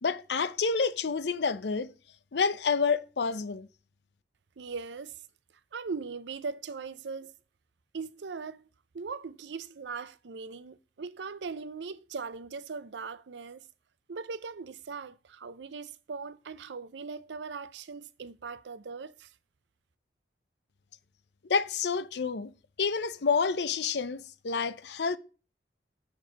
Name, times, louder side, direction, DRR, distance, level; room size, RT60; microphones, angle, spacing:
voice 1, 0.0-1.9 2.3-3.7 21.5-22.5 22.8-25.2, left 5 dB, 75° left, 0.6 m, -28 dB
voice 2, 4.6-5.2 5.7-7.3 7.9-8.7 8.9-13.7 14.1-19.3, right 4 dB, 90° right, 0.5 m, -40 dB
7.5 x 4.5 x 6.0 m
head